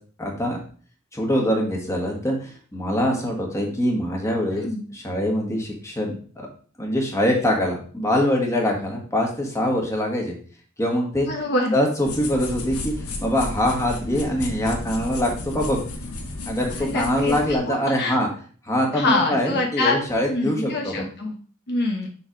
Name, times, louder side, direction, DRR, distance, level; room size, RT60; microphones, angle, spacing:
voice 1, 0.2-0.6 1.1-6.5 6.8-10.3 10.8-11.3 11.7-15.8 16.5-18.3 18.6-21.0, equal, 15° left, 0 dB, 1.5 m, -24 dB
voice 2, 4.5-4.9 11.2-11.7 16.7-18.1 18.9-21.4 21.7-22.1, left 2 dB, 50° left, 1 dB, 1.0 m, -25 dB
sound 1, 12.0-17.5, left 2 dB, 70° left, 1.2 m, -33 dB
7.1 x 3.4 x 5.1 m, 0.43 s
head